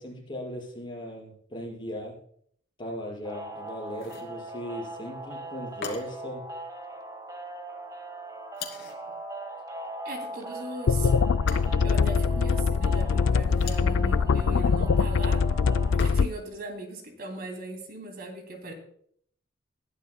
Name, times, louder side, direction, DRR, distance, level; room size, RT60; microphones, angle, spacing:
voice 1, 0.0-2.1 2.8-6.4, equal, 25° left, -4 dB, 5.4 m, -38 dB
sound 1, 3.2-16.0, right 2 dB, 20° right, 1.3 m, -40 dB
sound 2, 3.9-4.4 5.8-6.3 8.5-9.1 11.5-12.0 13.4-14.0 16.0-16.5, left 5 dB, 60° left, 2.8 m, -40 dB
voice 2, 10.0-11.1 11.8-15.4 15.9-18.7, right 1 dB, 55° right, 4 dB, 2.7 m, -38 dB
sound 3, 10.9-16.3, left 5 dB, 80° left, 0.4 m, -23 dB
21.0 x 11.0 x 2.2 m, 0.63 s
head